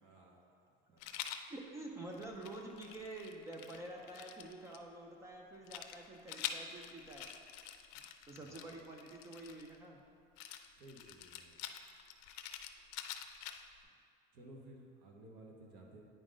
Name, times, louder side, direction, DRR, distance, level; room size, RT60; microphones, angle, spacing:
voice 1, 0.0-0.5 0.9-1.2 8.4-8.7 10.8-11.6 14.3-16.1, right 1 dB, 55° right, 0 dB, 0.9 m, -56 dB
Rattle, 1.0-1.5 2.1-4.8 5.7-9.8 10.4-13.8, left 10 dB, 70° left, 0.5 m, -47 dB
voice 2, 1.5-7.3 8.3-10.0, right 2 dB, 15° right, 0 dB, 0.3 m, -48 dB
8.9 x 4.9 x 3.8 m, 2.3 s
cardioid pair, 180°, 21 cm